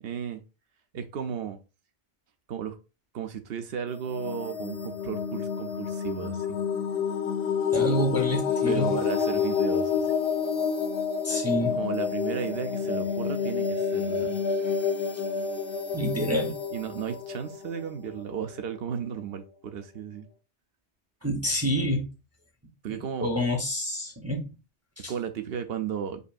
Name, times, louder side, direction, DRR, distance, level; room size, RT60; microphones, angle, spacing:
voice 1, 0.0-0.4 0.9-1.6 2.5-2.8 3.1-6.6 8.7-10.1 11.7-14.4 16.7-20.3 22.8-23.3 25.1-26.2, right 7 dB, 65° right, 0.8 m, -34 dB
sound 1, 3.9-18.6, left 6 dB, 60° left, 0.8 m, -29 dB
voice 2, 7.7-8.9 11.2-11.8 15.9-16.5 21.2-22.1 23.2-24.5 25.0-25.1, equal, 15° right, 0.7 m, -27 dB
5.2 x 2.6 x 2.4 m
omnidirectional pair, 1.1 m